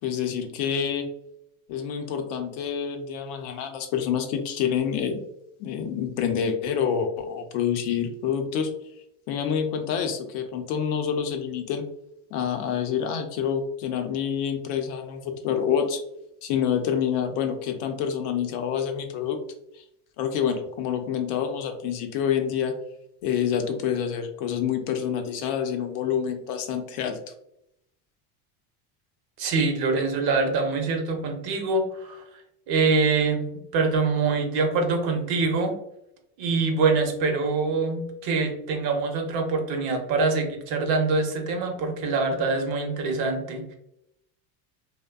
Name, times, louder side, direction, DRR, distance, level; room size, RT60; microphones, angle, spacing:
voice 1, 0.0-1.1 1.7-5.2 5.6-8.7 9.3-11.8 12.3-16.0 16.4-19.4 19.7-19.8 20.2-22.7 23.2-27.2, left 8 dB, 75° left, 5 dB, 0.6 m, -27 dB
voice 2, 29.4-32.2 32.7-35.7 36.4-43.8, right 4 dB, 55° right, 4 dB, 0.7 m, -24 dB
2.6 x 2.1 x 2.2 m, 0.80 s
supercardioid pair, 115°, 44 cm